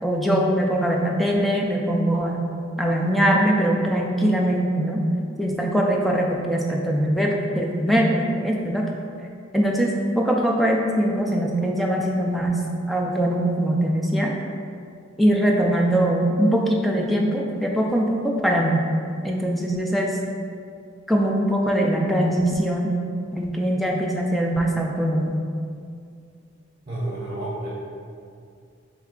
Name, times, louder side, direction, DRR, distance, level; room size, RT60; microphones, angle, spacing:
voice 1, 0.0-2.5 2.8-5.0 5.4-8.8 9.5-12.6 12.9-14.3 15.2-18.8 19.2-20.2 21.1-23.0 23.3-25.3, right 1 dB, ahead, -1 dB, 0.3 m, -22 dB
voice 2, 26.9-27.7, right 1 dB, 30° right, -6 dB, 0.7 m, -30 dB
3.5 x 3.2 x 3.6 m, 2.3 s
head